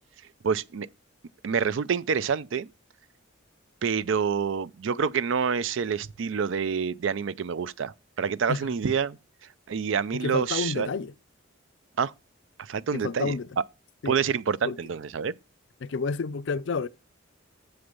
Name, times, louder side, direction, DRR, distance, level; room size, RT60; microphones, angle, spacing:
voice 1, 0.4-0.9 1.4-2.7 3.8-9.2 9.7-10.9 12.0-12.1 12.6-13.3 14.1-15.3, right 6 dB, 65° right, 0.4 m, -27 dB
voice 2, 10.1-11.1 12.9-13.5 14.0-14.2 14.6-14.8 15.8-16.9, left 4 dB, 60° left, 0.4 m, -30 dB
7.0 x 6.6 x 5.3 m
head